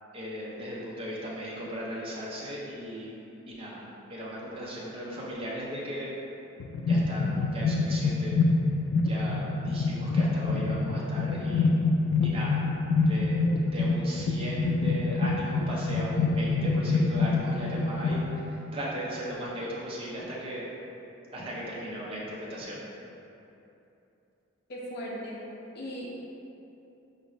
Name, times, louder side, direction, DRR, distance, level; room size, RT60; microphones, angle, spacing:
voice 1, 0.1-3.1 3.5-3.8 4.1-6.1 6.8-8.4 9.0-11.7 12.2-12.6 13.1-13.4 13.6-20.7 21.3-22.8, equal, 25° right, -6 dB, 0.5 m, -37 dB
sound 1, 6.6-18.2, left 3 dB, 80° left, 0.3 m, -26 dB
voice 2, 24.7-25.4 25.7-26.1, equal, 50° left, -4 dB, 0.6 m, -37 dB
4.7 x 2.6 x 3.0 m, 2.9 s
head